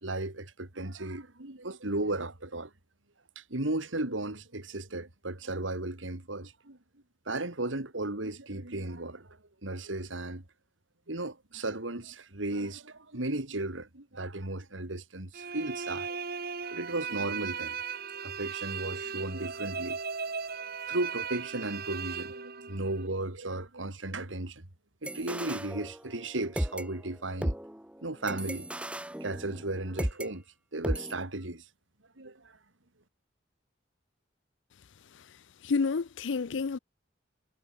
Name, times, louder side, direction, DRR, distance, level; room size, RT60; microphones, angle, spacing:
voice 1, 0.0-2.7 3.4-6.8 7.3-10.4 11.1-16.2 16.7-17.8 18.2-20.0 20.9-24.6 25.0-27.5 28.0-28.7 29.2-30.4 30.7-31.6 32.2-32.5, right 2 dB, 85° right, 2.8 m, -35 dB
sound 1, 15.3-23.1, right 6 dB, 55° right, 2.3 m, -37 dB
sound 2, 25.0-26.3 26.6-30.3 30.8-31.1, equal, 5° right, 1.0 m, -35 dB
voice 2, 35.6-36.8, left 4 dB, 70° left, 0.5 m, -29 dB
head